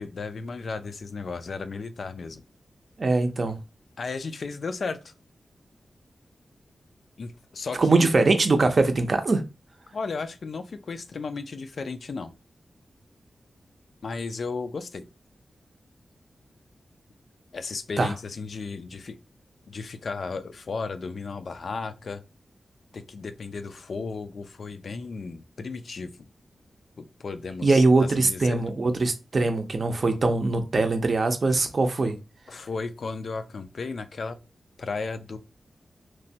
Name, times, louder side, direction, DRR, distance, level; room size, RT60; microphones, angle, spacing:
voice 1, 0.0-2.4 4.0-5.1 7.2-8.1 9.9-12.3 14.0-15.1 17.5-19.2 19.7-22.2 22.9-26.3 27.0-28.6 32.5-34.4 34.8-35.4, left 4 dB, 65° left, 0.3 m, -34 dB
voice 2, 3.0-3.6 7.8-9.4 18.0-18.1 27.6-32.2, right 3 dB, 50° right, 0.5 m, -22 dB
3.0 x 2.1 x 2.7 m
wide cardioid pair, 100°, 0 cm